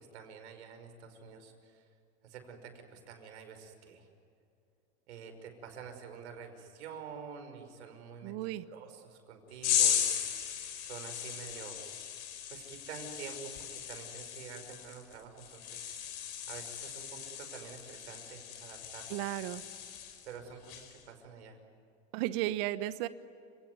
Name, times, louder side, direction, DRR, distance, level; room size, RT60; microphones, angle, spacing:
voice 1, 0.0-1.8 2.2-4.1 5.1-10.1 10.8-11.8 12.5-16.0 16.5-19.2 20.3-21.6, right 6 dB, 75° right, 6 dB, 5.6 m, -48 dB
voice 2, 8.2-8.6 19.1-19.6 22.1-23.1, right 15 dB, 55° right, 14 dB, 1.1 m, -34 dB
sound 1, 9.6-20.3 20.7-21.0, left 9 dB, 50° left, 4.9 m, -36 dB
30.0 x 19.0 x 9.5 m, 2.5 s
hypercardioid pair, 110°, 34 cm